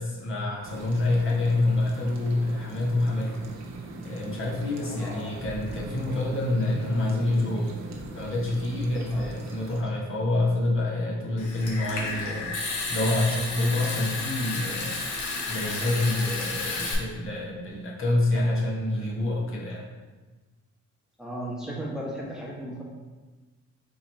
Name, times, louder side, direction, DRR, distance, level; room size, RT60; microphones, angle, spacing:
voice 1, 0.0-3.4 4.0-7.7 8.1-15.1 15.5-19.8, left 2 dB, 45° left, -3 dB, 1.0 m, -27 dB
sound 1, 0.6-9.8, right 1 dB, 60° right, 0.8 m, -40 dB
voice 2, 4.8-5.4 9.1-9.3 21.2-22.8, right 1 dB, ahead, -4 dB, 1.0 m, -36 dB
Water tap faucet / Sink (filling or washing) / Trickle dribble, 11.4-16.9, left 3 dB, 80° left, 1.0 m, -32 dB
3.8 x 2.9 x 4.3 m, 1.2 s
cardioid pair, 90°, 30 cm